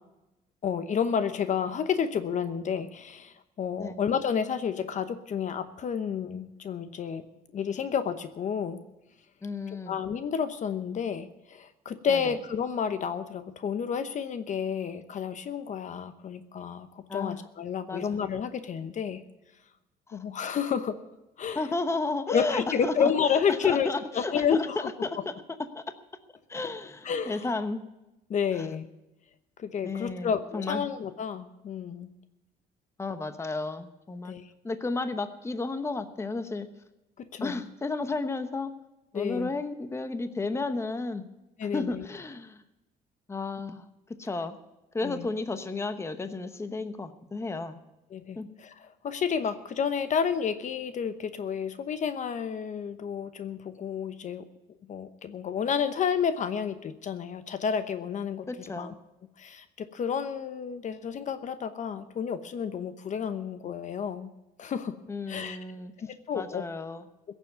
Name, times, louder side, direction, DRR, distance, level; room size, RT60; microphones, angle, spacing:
voice 1, 0.6-7.2 7.5-8.8 9.9-19.2 20.1-21.0 21.4-21.6 22.3-23.9 24.1-25.1 27.0-27.4 28.3-28.9 29.6-32.1 34.3-34.5 37.2-37.6 39.1-39.5 41.6-42.0 45.0-45.2 48.1-54.4 54.9-58.5 58.8-58.9 59.4-64.3 64.6-64.9 65.3-65.6 66.0-66.6, left 7 dB, 45° left, 11 dB, 0.9 m, -30 dB
voice 2, 9.4-10.0 12.1-12.3 17.1-17.4 17.9-18.1 20.1-20.2 21.5-25.3 25.7-25.8 26.5-27.8 28.5-28.7 29.8-30.8 33.0-34.3 34.6-36.7 37.4-38.7 39.1-41.2 41.7-42.6 43.3-43.8 44.2-44.6 44.9-47.8 48.4-48.5 58.5-58.9 65.1-65.9 66.3-67.0, left 3 dB, 15° left, 10 dB, 1.0 m, -33 dB
16.5 x 7.3 x 9.5 m, 0.96 s
cardioid pair, 110°, 17 cm